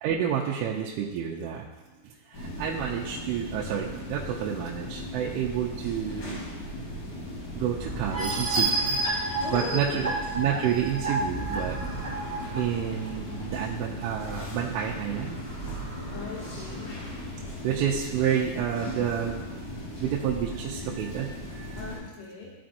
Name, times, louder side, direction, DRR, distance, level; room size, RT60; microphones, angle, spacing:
voice 1, 0.0-1.7 2.3-6.4 7.5-9.0 9.5-11.8 12.5-15.4 17.6-19.4 20.0-21.8, right 9 dB, 85° right, -3 dB, 3.1 m, -29 dB
sound 1, 2.3-22.0, left 1 dB, 45° left, 3.7 m, -38 dB
sound 2, 7.6-14.6 14.9-17.6, right 2 dB, 40° right, 1.3 m, -42 dB
sound 3, 8.1-12.6 13.1-13.2 13.5-13.6, right 2 dB, 60° right, 1.1 m, -30 dB
voice 2, 9.4-10.2 11.8-12.1 16.1-16.9 21.8-22.5, left 4 dB, 75° left, -4 dB, 3.6 m, -38 dB
14.5 x 5.0 x 2.6 m, 1.2 s
omnidirectional pair, 5.5 m